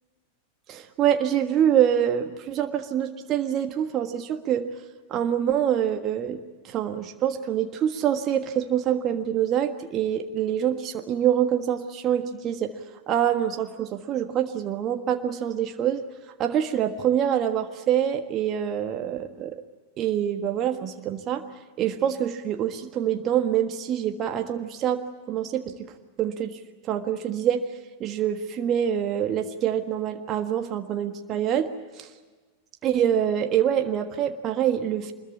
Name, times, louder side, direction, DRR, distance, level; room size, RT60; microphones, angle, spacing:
voice 1, 0.7-4.7 5.1-12.7 13.1-16.0 16.4-19.5 20.0-21.4 21.8-25.7 26.2-26.6 26.9-27.6 28.0-31.7 32.0-32.1 32.8-35.1, right 10 dB, 30° right, 6 dB, 1.5 m, -25 dB
25.5 x 21.5 x 8.6 m, 1.3 s
figure-of-eight pair, 90°, 0 cm